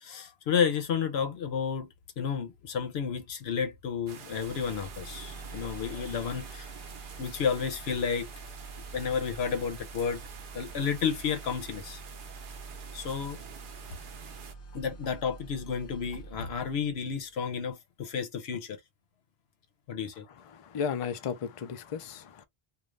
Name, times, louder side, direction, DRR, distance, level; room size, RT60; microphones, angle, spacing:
voice 1, 0.0-1.9 2.2-6.7 7.2-8.3 8.9-10.2 10.5-12.0 12.9-13.4 14.7-18.8 19.9-20.3, left 7 dB, 85° left, 1.0 m, -31 dB
sound 1, 4.1-14.5, right 7 dB, 60° right, 0.7 m, -47 dB
sound 2, 4.2-17.3, right 3 dB, 60° left, 0.9 m, -46 dB
voice 2, 20.4-22.4, left 7 dB, 45° left, 0.5 m, -34 dB
2.5 x 2.4 x 3.1 m
omnidirectional pair, 1.0 m